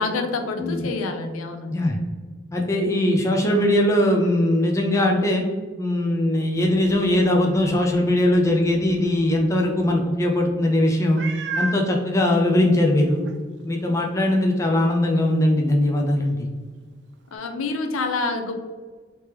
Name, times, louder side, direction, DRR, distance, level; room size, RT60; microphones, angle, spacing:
voice 1, 0.0-1.9 17.3-18.6, left 3 dB, 90° left, 5 dB, 0.5 m, -27 dB
voice 2, 0.6-0.9 1.7-2.0 2.5-5.4 5.8-11.2 11.6-13.2 13.6-16.5, left 1 dB, 15° left, 0 dB, 0.4 m, -20 dB
Meow, 11.2-11.9 12.6-12.7 13.2-13.3 17.3-17.4, right 4 dB, 55° right, 0.4 m, -29 dB
3.2 x 2.9 x 3.3 m, 1.5 s
head